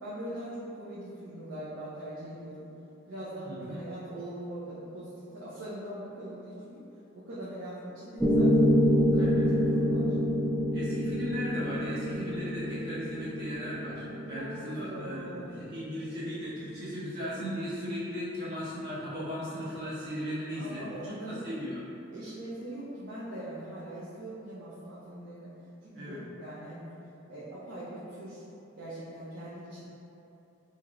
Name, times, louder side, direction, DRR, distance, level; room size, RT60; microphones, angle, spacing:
voice 1, 0.0-2.7 3.1-6.8 7.1-8.7 9.1-10.1 14.3-15.5 20.5-21.4 22.1-25.5 25.8-26.9 27.3-28.4 28.8-29.9, right 1 dB, 65° right, -10 dB, 0.6 m, -41 dB
voice 2, 3.4-3.8 9.2-9.7 10.7-21.8 25.9-26.2, equal, 50° right, -11 dB, 1.2 m, -37 dB
Piano, 8.2-16.3, equal, 5° right, 0.3 m, -27 dB
4.6 x 2.8 x 2.5 m, 2.9 s
head